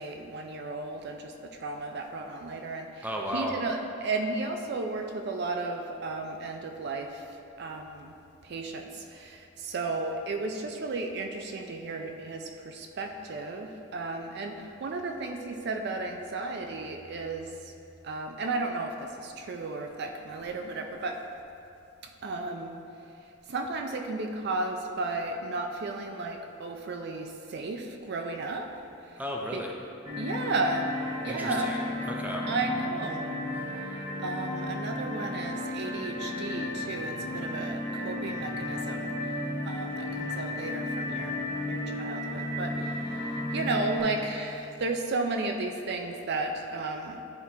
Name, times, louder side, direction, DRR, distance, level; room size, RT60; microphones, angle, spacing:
voice 1, 0.0-3.1 3.3-7.3 7.6-8.1 8.4-17.7 18.0-21.2 22.2-22.8 23.5-28.7 29.1-29.2 29.5-29.6 30.2-30.9 31.2-31.7 32.5-33.3 34.2-39.1 39.7-41.4 41.7-47.2, right 3 dB, 55° right, 4 dB, 0.4 m, -34 dB
voice 2, 3.0-3.5 29.2-29.7 31.3-32.5, equal, 10° right, -1 dB, 0.6 m, -34 dB
sound 1, 30.0-44.0, left 1 dB, 25° right, 1.4 m, -34 dB
10.5 x 4.4 x 2.8 m, 2.7 s
head